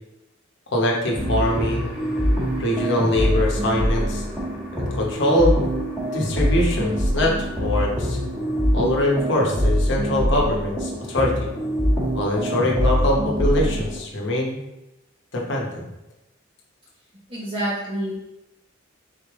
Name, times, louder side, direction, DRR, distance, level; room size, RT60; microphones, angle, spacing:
voice 1, 0.7-1.9 2.6-4.2 4.8-5.5 6.1-8.2 8.7-11.5 12.1-14.6 15.3-15.9, left 1 dB, 60° left, -2 dB, 0.9 m, -23 dB
sound 1, 1.2-14.0, equal, 5° right, 1.2 m, -24 dB
voice 2, 17.3-18.2, right 1 dB, 25° right, -7 dB, 0.8 m, -27 dB
4.0 x 3.3 x 3.6 m, 0.95 s
head